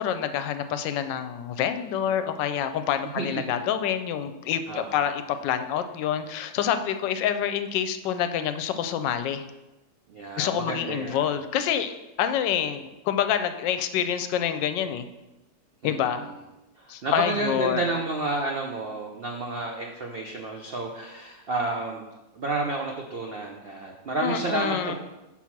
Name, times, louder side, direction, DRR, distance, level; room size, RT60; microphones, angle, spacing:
voice 1, 0.0-9.5 10.4-11.9 12.2-15.1 15.8-16.3 16.9-17.9 24.2-24.9, left 9 dB, 80° left, 10 dB, 1.2 m, -27 dB
voice 2, 3.1-3.6 4.7-5.0 10.1-11.4 15.8-16.3 16.8-22.0 22.3-24.9, right 2 dB, 85° right, 1 dB, 0.5 m, -31 dB
6.1 x 4.0 x 5.8 m, 1.0 s
omnidirectional pair, 1.9 m